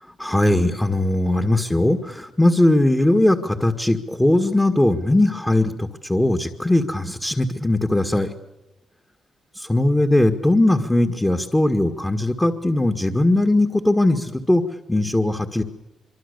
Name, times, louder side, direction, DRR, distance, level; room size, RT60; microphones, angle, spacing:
voice 1, 0.2-8.3 9.6-14.6 14.9-15.6, left 1 dB, 10° left, 5 dB, 1.8 m, -19 dB
25.0 x 24.0 x 6.9 m, 1.0 s
cardioid pair, 110°, 0 cm